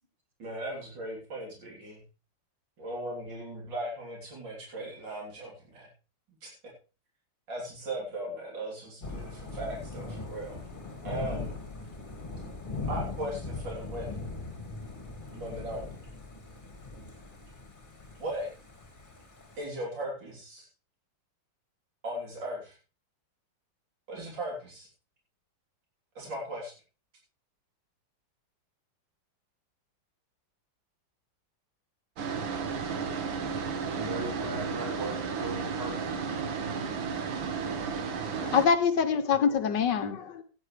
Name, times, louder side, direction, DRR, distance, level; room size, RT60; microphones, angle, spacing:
voice 1, 0.4-2.0 2.8-5.9 6.4-6.5 7.5-10.6 11.0-11.5 12.8-14.1 15.3-15.9 18.2-18.5 19.6-20.7 22.0-22.7 24.1-24.9 26.2-26.7, right 1 dB, 70° right, -3 dB, 4.1 m, -37 dB
Thunder / Rain, 9.0-19.6, left 3 dB, 25° left, 2.0 m, -40 dB
sound 1, 32.2-38.7, right 5 dB, 85° right, 2.0 m, -33 dB
voice 2, 33.9-36.1, right 2 dB, 30° right, 2 dB, 2.7 m, -38 dB
voice 3, 38.3-40.4, left 6 dB, 70° left, 9 dB, 1.4 m, -25 dB
15.5 x 9.9 x 3.2 m, 0.33 s
omnidirectional pair, 2.1 m